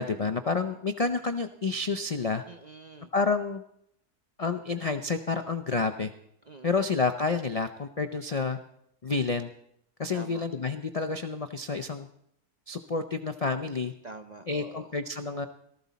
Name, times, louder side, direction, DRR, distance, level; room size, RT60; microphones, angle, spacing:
voice 1, 0.0-2.4 3.1-3.6 4.4-6.1 6.6-8.6 9.0-9.5 10.0-12.1 12.7-13.9 14.5-15.5, left 4 dB, 75° left, 8 dB, 0.3 m, -29 dB
voice 2, 2.5-3.1 6.5-6.8 10.1-10.4 14.0-14.9, right 3 dB, 45° right, 6 dB, 0.5 m, -45 dB
18.5 x 14.0 x 4.1 m, 0.74 s
omnidirectional pair, 1.6 m